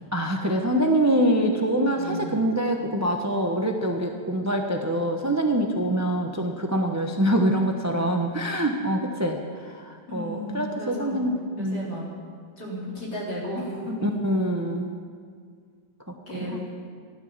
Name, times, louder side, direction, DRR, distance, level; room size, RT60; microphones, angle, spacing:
voice 1, 0.1-11.9 14.0-14.9 16.5-16.7, right 1 dB, 20° right, 3 dB, 0.5 m, -25 dB
voice 2, 1.9-2.4 10.1-11.2 11.6-12.0 12.6-13.9 16.3-16.5, equal, 55° left, -5 dB, 4.4 m, -34 dB
15.0 x 12.0 x 7.3 m, 2.1 s
omnidirectional pair, 2.1 m